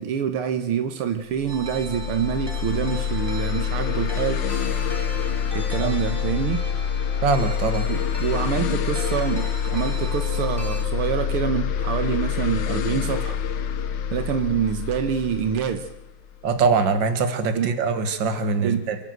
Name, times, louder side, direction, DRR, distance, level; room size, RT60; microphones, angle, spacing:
voice 1, 0.0-4.4 5.5-6.6 7.9-13.4 14.1-15.9 17.5-17.7 18.6-18.9, right 8 dB, 85° right, 9 dB, 2.0 m, -26 dB
sound 1, 1.4-16.8, left 8 dB, 60° left, 1.6 m, -26 dB
sound 2, 1.5-10.8, right 1 dB, 10° right, 2.1 m, -40 dB
voice 2, 7.2-7.9 16.4-19.0, right 4 dB, 60° right, 9 dB, 2.3 m, -22 dB
27.5 x 12.0 x 7.9 m, 0.95 s
omnidirectional pair, 2.4 m